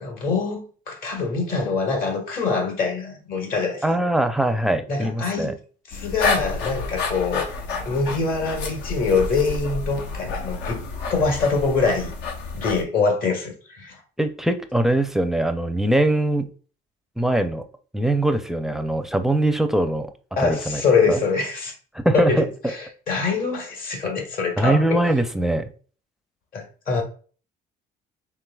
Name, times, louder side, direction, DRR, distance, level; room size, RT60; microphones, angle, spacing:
voice 1, 0.0-4.0 4.9-5.5 5.9-7.5 7.8-10.8 11.1-12.1 12.5-14.0 20.4-21.7 22.1-25.0 26.5-27.0, left 4 dB, 60° left, 1.6 m, -24 dB
voice 2, 3.8-5.5 14.2-16.5 17.2-17.6 17.9-20.1 20.4-20.8 21.1-21.2 21.9-22.5 24.6-25.7, right 1 dB, ahead, 0.5 m, -22 dB
sound 1, 5.9-12.8, left 4 dB, 80° left, 0.9 m, -29 dB
4.7 x 3.6 x 2.3 m
cardioid pair, 110°, 17 cm